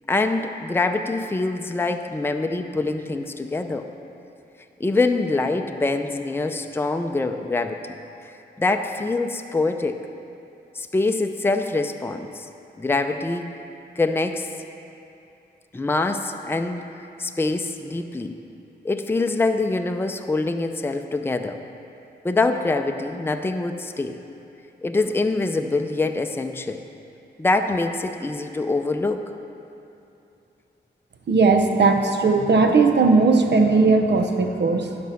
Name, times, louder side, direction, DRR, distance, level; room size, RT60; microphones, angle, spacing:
voice 1, 0.1-3.9 4.8-8.0 8.6-10.0 10.7-12.5 12.8-13.5 14.0-14.5 15.7-16.9 17.2-18.4 18.8-21.6 22.2-24.2 24.8-26.8 27.4-29.2, left 3 dB, 10° left, 6 dB, 0.5 m, -24 dB
voice 2, 31.3-35.0, right 4 dB, 70° right, 5 dB, 0.8 m, -18 dB
11.5 x 5.3 x 5.7 m, 2.8 s
cardioid pair, 60°, 19 cm